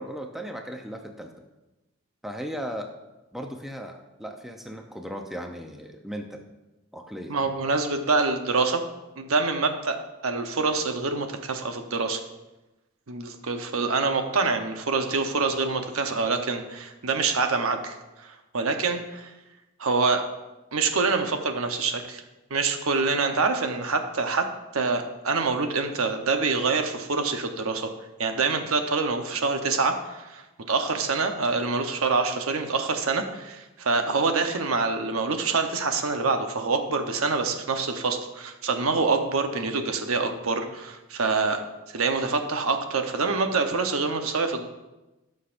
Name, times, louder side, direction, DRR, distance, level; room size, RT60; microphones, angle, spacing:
voice 1, 0.0-1.3 2.2-2.9 3.3-6.4 6.9-7.3, equal, ahead, 3 dB, 0.6 m, -36 dB
voice 2, 7.3-8.8 9.2-10.0 10.2-12.2 13.1-19.3 19.8-20.3 20.7-22.2 22.5-27.9 28.2-41.6 41.9-44.7, right 4 dB, 85° right, 5 dB, 0.9 m, -26 dB
17.0 x 6.4 x 2.6 m, 1.0 s
head